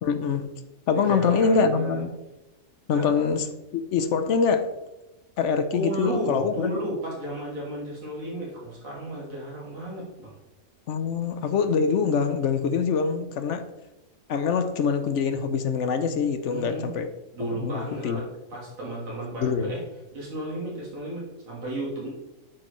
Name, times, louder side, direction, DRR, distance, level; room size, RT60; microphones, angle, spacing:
voice 1, 0.0-0.5 0.9-2.1 2.9-3.5 3.7-4.7 5.4-6.7 10.9-13.7 14.3-17.1 17.4-18.2 19.4-19.7, left 5 dB, 70° left, 9 dB, 0.9 m, -24 dB
voice 2, 0.9-2.0 2.9-3.1 5.7-10.4 16.5-16.9 17.3-18.2 18.5-19.8 20.1-22.1, right 1 dB, 90° right, -5 dB, 2.2 m, -33 dB
8.7 x 6.3 x 3.1 m, 0.99 s
omnidirectional pair, 1.4 m